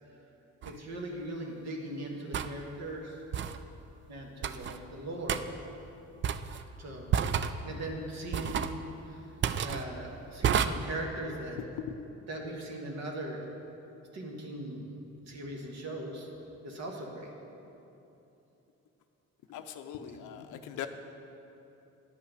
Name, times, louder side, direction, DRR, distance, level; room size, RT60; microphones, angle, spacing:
sound 1, 0.6-0.8 2.3-2.5 3.3-3.6 4.4-4.8 5.3-5.4 6.2-6.6 7.1-7.5 8.3-8.8 9.4-9.8 10.4-10.7, right 8 dB, 40° right, 0.4 m, -29 dB
voice 1, 0.6-3.2 4.1-5.4 6.8-7.1 7.6-8.8 9.0-9.2 9.6-11.6 12.3-13.4 14.1-14.9 15.3-16.3 16.6-17.3 20.0-20.2, right 1 dB, 60° right, 0 dB, 1.5 m, -39 dB
voice 2, 19.5-20.9, left 10 dB, 85° left, 8 dB, 0.6 m, -40 dB
9.4 x 5.6 x 6.5 m, 2.9 s
cardioid pair, 90°, 30 cm